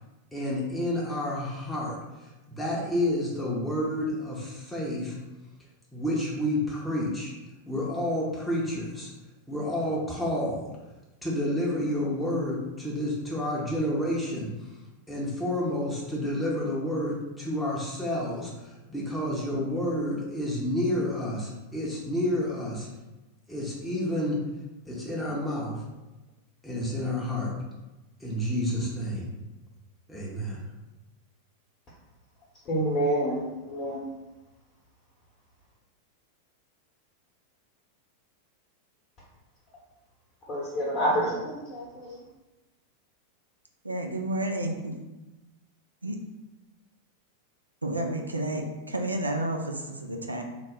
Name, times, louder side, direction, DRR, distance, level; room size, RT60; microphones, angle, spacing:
voice 1, 0.3-5.2 5.9-7.3 7.7-9.1 9.5-10.7 11.2-14.5 15.1-22.9 23.5-24.4 24.9-25.8 26.6-27.5 28.2-29.3 30.1-30.6, left 1 dB, 5° left, 0.7 m, -30 dB
voice 2, 32.7-34.1 40.5-41.8, right 1 dB, 30° left, 0.8 m, -27 dB
voice 3, 43.8-44.9 46.0-46.2 47.8-50.4, right 1 dB, 80° right, 0.3 m, -31 dB
3.0 x 2.0 x 3.7 m
figure-of-eight pair, 90°, 0 cm